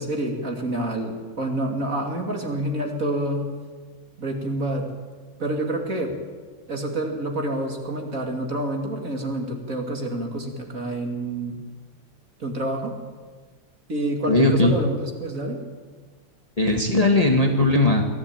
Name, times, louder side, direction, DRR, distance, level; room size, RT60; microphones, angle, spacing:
voice 1, 0.0-3.5 4.2-4.9 5.4-6.1 6.7-11.6 12.4-13.0 13.9-15.6, right 1 dB, 40° right, 2 dB, 3.1 m, -28 dB
voice 2, 14.3-14.8 16.6-18.1, left 2 dB, 20° left, 2 dB, 1.8 m, -18 dB
22.5 x 14.5 x 9.0 m, 1.5 s
omnidirectional pair, 2.1 m